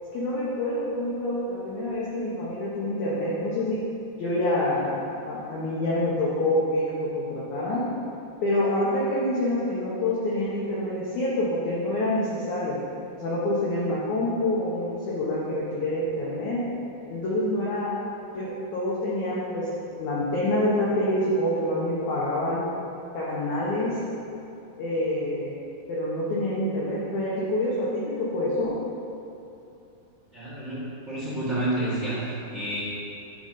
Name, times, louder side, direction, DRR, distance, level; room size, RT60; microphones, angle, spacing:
voice 1, 0.1-3.8 4.2-7.8 8.4-12.8 13.2-16.6 17.1-17.9 18.3-19.7 20.0-22.6 23.1-24.0 24.8-25.6 25.9-28.7, left 1 dB, 65° left, -7 dB, 1.9 m, -27 dB
voice 2, 30.3-32.8, right 1 dB, 45° right, -9 dB, 0.9 m, -29 dB
11.5 x 4.0 x 5.6 m, 2.7 s
omnidirectional pair, 4.8 m